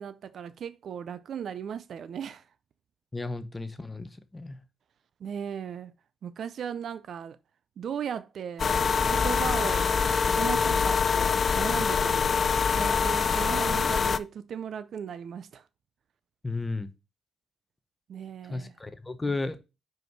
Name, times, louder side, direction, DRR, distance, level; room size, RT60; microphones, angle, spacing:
voice 1, 0.0-2.4 5.2-5.9 6.2-7.4 7.8-8.7 9.1-9.9 10.3-15.6 18.1-18.7, right 8 dB, 60° right, 0.5 m, -37 dB
voice 2, 3.1-4.6 16.4-16.9 18.4-19.6, left 3 dB, 15° left, 0.9 m, -33 dB
sound 1, 8.6-14.2, left 6 dB, 45° left, 0.4 m, -25 dB
5.1 x 4.7 x 4.7 m
cardioid pair, 90°, 0 cm